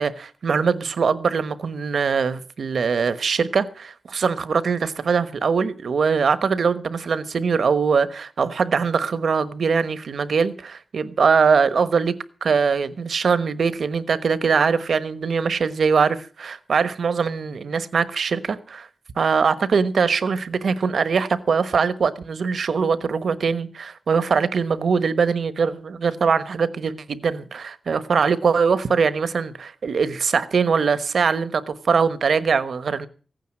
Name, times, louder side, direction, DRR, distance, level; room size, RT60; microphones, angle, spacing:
voice 1, 0.0-12.1 12.4-18.9 19.2-33.1, right 5 dB, 80° right, 1.1 m, -22 dB
16.0 x 9.3 x 7.5 m
wide cardioid pair, 155°, 0 cm